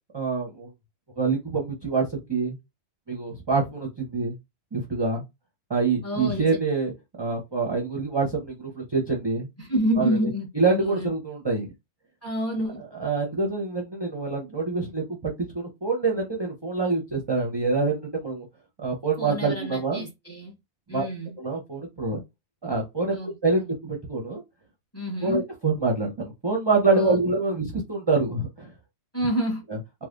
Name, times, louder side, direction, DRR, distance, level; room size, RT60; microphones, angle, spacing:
voice 1, 0.1-0.7 1.2-2.6 3.1-4.4 4.7-5.2 5.7-6.9 7.2-9.5 10.0-10.2 10.5-11.7 13.0-18.5 18.8-20.1 20.9-21.0 21.4-22.2 22.6-23.2 23.4-24.4 25.2-28.7 29.7-29.8, right 3 dB, 30° right, 0.7 m, -26 dB
voice 2, 6.0-6.6 9.6-10.5 10.7-11.1 12.2-12.8 19.2-20.5 20.9-21.3 23.1-23.7 24.9-25.4 26.9-27.2 29.1-29.6, equal, 15° left, 1.2 m, -28 dB
3.3 x 2.4 x 2.4 m
omnidirectional pair, 1.1 m